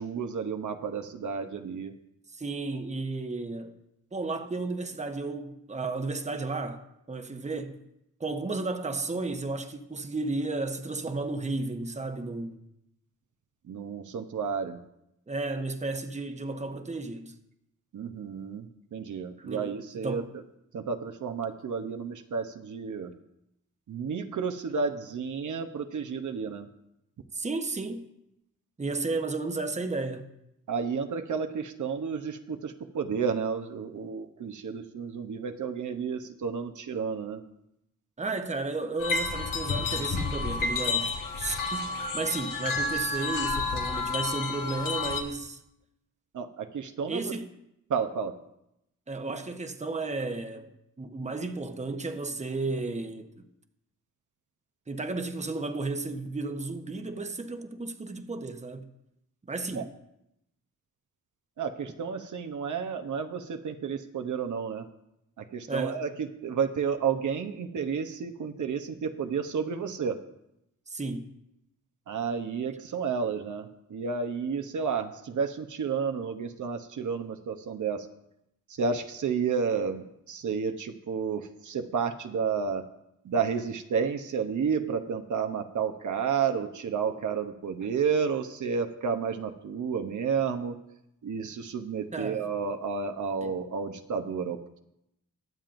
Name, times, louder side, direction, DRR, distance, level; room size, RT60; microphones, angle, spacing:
voice 1, 0.0-1.9 13.7-14.8 17.9-20.2 20.7-23.1 23.9-26.7 30.7-37.4 46.3-47.3 47.9-48.3 59.8-59.9 61.6-64.8 65.5-70.2 72.1-78.0 78.8-82.8 83.3-90.7 91.2-94.8, right 6 dB, 65° right, 0.9 m, -31 dB
voice 2, 2.3-3.7 4.1-6.8 7.1-7.8 8.2-12.6 15.3-17.3 19.4-19.7 20.0-20.3 27.3-28.1 28.8-30.3 38.2-41.1 41.4-45.6 47.1-47.5 49.1-53.3 54.9-58.9 59.5-59.9 65.7-66.0 70.9-71.3 92.1-92.5 93.4-93.6, right 3 dB, 20° right, 1.0 m, -33 dB
sound 1, 39.0-45.2, left 4 dB, 80° left, 1.5 m, -30 dB
22.0 x 7.4 x 2.6 m
cardioid pair, 75°, 32 cm